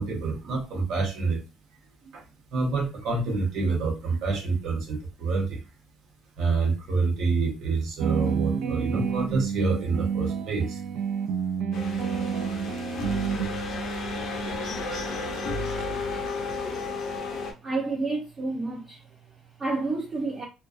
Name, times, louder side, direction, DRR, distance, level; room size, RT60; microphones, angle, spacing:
voice 1, 0.0-1.4 2.1-2.2 2.5-5.6 6.4-10.8, right 4 dB, 65° right, 0.8 m, -27 dB
sound 1, 8.0-13.5, right 6 dB, 80° right, 0.3 m, -29 dB
sound 2, 11.7-17.5, left 2 dB, 55° left, 0.6 m, -32 dB
voice 2, 13.4-14.0 17.6-20.4, right 3 dB, 25° right, 0.5 m, -31 dB
2.3 x 2.2 x 2.4 m
cardioid pair, 155°, 0 cm